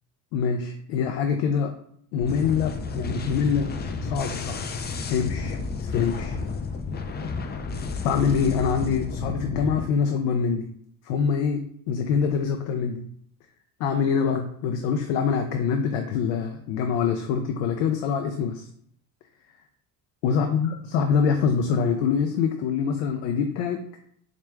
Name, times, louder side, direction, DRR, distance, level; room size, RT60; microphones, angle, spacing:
voice 1, 0.3-1.7 2.1-3.7 4.0-4.6 5.1-6.4 8.0-10.6 11.0-13.0 13.8-18.7 20.2-23.8, left 6 dB, 90° left, 5 dB, 0.5 m, -25 dB
sound 1, 2.2-9.8, left 4 dB, 25° left, 0.4 m, -31 dB
4.3 x 2.5 x 3.3 m, 0.67 s
supercardioid pair, 80°, 45 cm